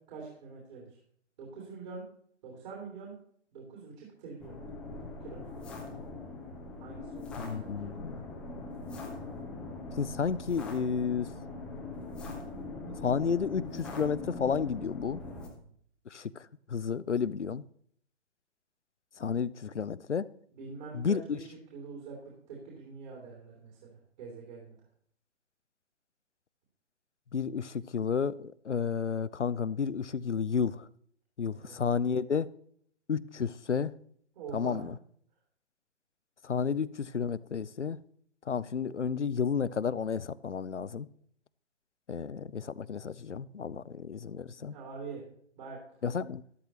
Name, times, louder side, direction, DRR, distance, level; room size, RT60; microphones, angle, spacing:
voice 1, 0.1-0.8 1.4-2.0 2.4-3.1 3.5-4.5 5.2-5.5 6.8-7.9 15.2-15.7 20.5-22.2 22.5-24.8 31.6-31.8 34.3-34.9 44.5-45.2 45.6-45.8, right 4 dB, 40° right, 3.3 m, -45 dB
sound 1, 4.4-15.5, left 3 dB, 5° left, 0.5 m, -42 dB
voice 2, 7.4-8.2 10.0-11.3 13.0-15.2 16.1-16.3 16.7-17.6 19.2-20.3 20.9-21.4 27.3-30.9 31.4-32.5 33.1-33.9 34.5-35.0 36.4-38.0 38.5-41.1 42.1-44.7 46.0-46.4, left 6 dB, 85° left, 0.6 m, -31 dB
12.5 x 12.0 x 3.0 m
figure-of-eight pair, 130°, 34 cm